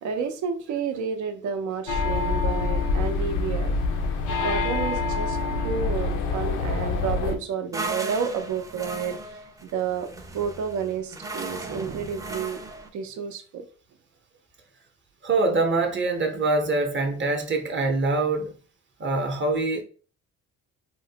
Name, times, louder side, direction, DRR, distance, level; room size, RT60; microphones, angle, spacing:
voice 1, 0.0-3.8 4.4-12.6 12.9-13.7, right 6 dB, 70° right, 0.6 m, -31 dB
sound 1, 1.9-7.4, left 3 dB, 85° left, 0.6 m, -26 dB
sound 2, 7.7-12.9, right 2 dB, 10° right, 0.4 m, -36 dB
voice 2, 15.2-18.5 19.0-19.8, right 3 dB, 40° right, 0.8 m, -24 dB
3.7 x 2.1 x 2.7 m
cardioid pair, 90°, 30 cm